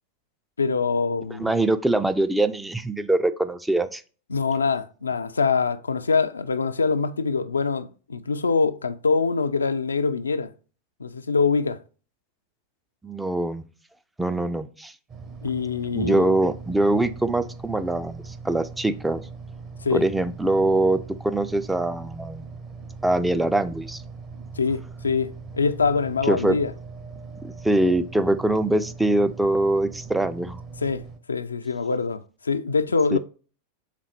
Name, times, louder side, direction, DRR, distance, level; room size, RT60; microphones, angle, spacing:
voice 1, 0.6-1.5 4.3-10.5 11.0-11.8 15.4-16.2 19.8-20.0 24.6-26.7 30.8-31.0 31.3-33.2, left 4 dB, 75° left, 0.3 m, -24 dB
voice 2, 1.4-4.0 13.0-13.6 14.2-14.9 15.9-19.2 19.9-22.5 23.0-24.0 26.3-26.6 27.4-30.6 33.1-33.2, right 2 dB, 5° right, 0.3 m, -23 dB
sound 1, 15.1-31.2, right 4 dB, 30° right, 0.7 m, -40 dB
4.1 x 3.6 x 3.1 m
figure-of-eight pair, 90°, 0 cm